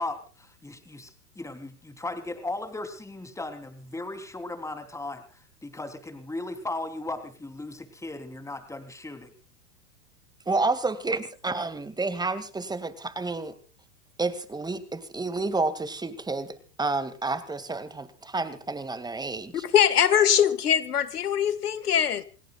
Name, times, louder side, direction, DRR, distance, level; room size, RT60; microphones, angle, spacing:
voice 1, 0.0-9.3, left 2 dB, 5° left, 3.3 m, -37 dB
voice 2, 10.5-13.5 14.2-19.5, right 3 dB, 10° right, 2.1 m, -30 dB
voice 3, 19.5-22.2, left 9 dB, 90° left, 1.7 m, -22 dB
28.5 x 18.0 x 2.4 m
hypercardioid pair, 110°, 44 cm